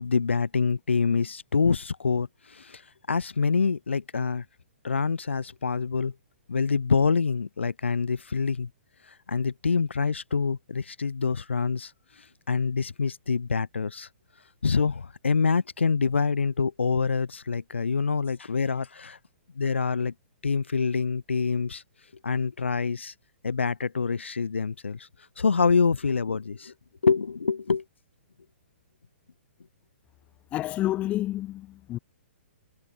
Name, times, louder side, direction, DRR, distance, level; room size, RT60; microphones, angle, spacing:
voice 1, 0.0-2.3 2.5-2.8 3.1-4.4 4.8-6.1 6.5-8.7 9.3-11.9 12.5-14.1 14.6-19.2 19.6-20.1 20.4-21.8 22.2-23.1 23.4-25.0 25.4-26.7 27.0-27.8, left 5 dB, 70° left, 0.6 m, -26 dB
voice 2, 30.5-32.0, left 14 dB, 20° left, 0.7 m, -29 dB
figure-of-eight pair, 120°, 7 cm